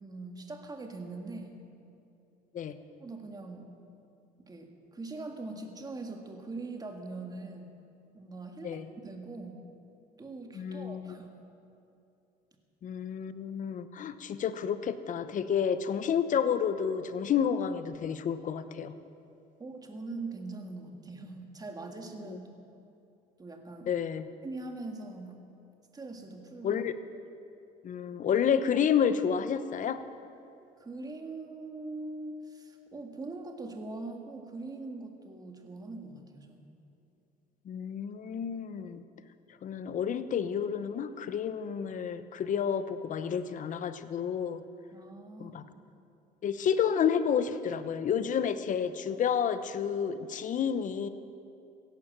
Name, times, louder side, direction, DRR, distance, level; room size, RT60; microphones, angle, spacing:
voice 1, 0.0-1.6 3.0-3.7 4.4-7.7 8.1-9.6 10.2-11.3 19.6-22.5 23.4-23.9 24.4-25.4 25.9-26.8 30.8-36.7 44.9-45.6, right 3 dB, 20° right, 4 dB, 1.9 m, -42 dB
voice 2, 10.5-11.1 12.8-18.9 22.3-22.4 23.9-24.3 26.6-26.9 27.8-30.0 37.7-39.0 39.6-44.6 45.4-45.6 46.4-51.1, left 7 dB, 50° left, 12 dB, 0.9 m, -30 dB
16.5 x 11.5 x 7.4 m, 2.7 s
cardioid pair, 110°, 17 cm